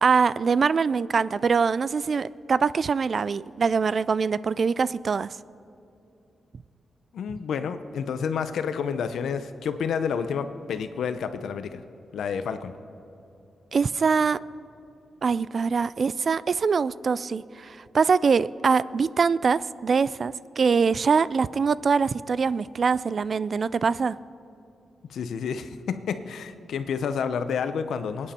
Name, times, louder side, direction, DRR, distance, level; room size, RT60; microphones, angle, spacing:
voice 1, 0.0-5.4 13.7-14.4 15.2-24.2, right 5 dB, 50° right, 18 dB, 0.3 m, -23 dB
voice 2, 7.1-11.8 12.1-12.7 25.1-28.3, left 6 dB, 85° left, 10 dB, 0.8 m, -29 dB
23.0 x 9.9 x 4.3 m, 2.7 s
cardioid pair, 100°, 0 cm